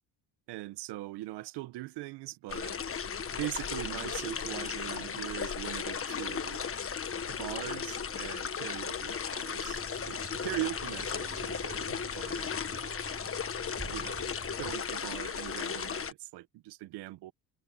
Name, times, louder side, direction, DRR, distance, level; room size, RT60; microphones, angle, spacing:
voice 1, 0.5-2.8 3.3-6.6 7.3-9.8 10.1-12.5 13.9-17.3, right 17 dB, 80° right, 1.1 m, -41 dB
sound 1, 2.5-16.1, left 7 dB, 35° left, 1.5 m, -36 dB
sound 2, 9.7-14.7, right 3 dB, 20° right, 3.3 m, -48 dB
cardioid pair, 100°, 40 cm